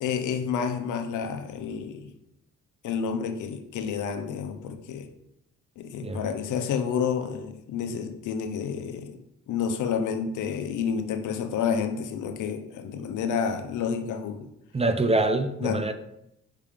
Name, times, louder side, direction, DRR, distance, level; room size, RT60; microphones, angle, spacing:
voice 1, 0.0-2.1 2.8-5.1 5.8-9.2 9.5-14.5 15.6-15.8, left 7 dB, 80° left, 0.8 m, -29 dB
voice 2, 14.7-15.9, right 2 dB, 20° right, 0.5 m, -24 dB
5.7 x 3.4 x 5.0 m
cardioid pair, 90°, 30 cm